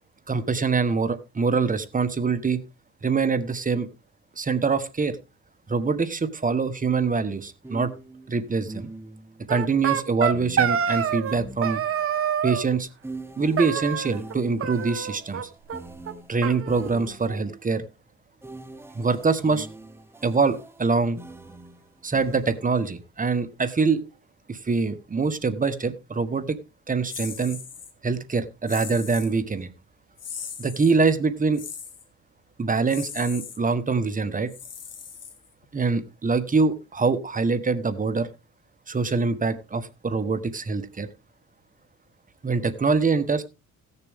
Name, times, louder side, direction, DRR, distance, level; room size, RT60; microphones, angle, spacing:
voice 1, 0.3-2.6 3.0-3.9 4.4-5.1 5.7-7.9 8.3-8.9 9.5-11.8 12.4-12.9 13.4-15.4 16.3-17.8 18.9-19.7 20.2-21.2 22.0-24.0 24.5-26.6 26.9-27.6 28.0-29.7 30.6-31.6 32.6-34.5 35.7-38.3 38.9-41.1 42.4-43.4, right 4 dB, 25° right, 1.2 m, -24 dB
sound 1, 7.6-9.4 10.3-12.2 13.0-17.5 18.4-22.9, right 2 dB, 10° right, 1.1 m, -43 dB
sound 2, 9.5-11.4 11.6-12.7 13.6-14.3 14.6-15.4 15.7-15.8 16.1-16.2 16.4-17.5, right 8 dB, 45° right, 1.2 m, -27 dB
sound 3, 27.1-27.9 28.7-29.3 30.2-31.0 31.5-32.0 32.9-33.6 34.5-35.6, left 7 dB, 55° left, 2.4 m, -39 dB
16.0 x 6.9 x 3.5 m
cardioid pair, 90°, 30 cm